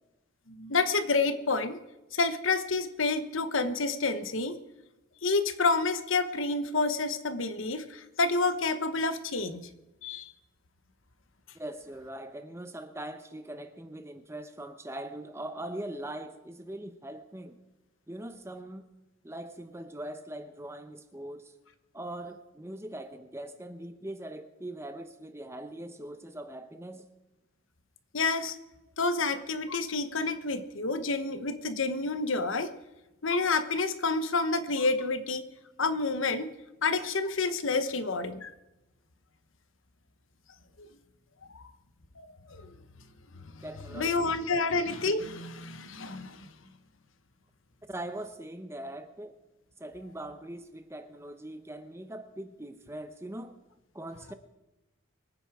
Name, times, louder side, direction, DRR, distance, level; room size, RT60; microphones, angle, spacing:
voice 1, 0.5-1.8 2.1-4.6 5.2-9.6 10.0-10.3 28.1-28.6 29.0-32.7 33.2-35.4 35.8-36.5 36.8-38.5 40.8-40.9 41.5-41.6 42.2-42.7 43.6-43.7 43.9-46.5, left 3 dB, 75° left, 10 dB, 1.1 m, -29 dB
voice 2, 11.5-17.6 18.1-18.9 19.2-21.5 21.9-27.1 43.6-44.3 47.9-49.3 49.8-53.5 53.9-54.3, right 1 dB, 15° right, 9 dB, 0.8 m, -41 dB
23.5 x 9.2 x 4.9 m, 1.0 s
head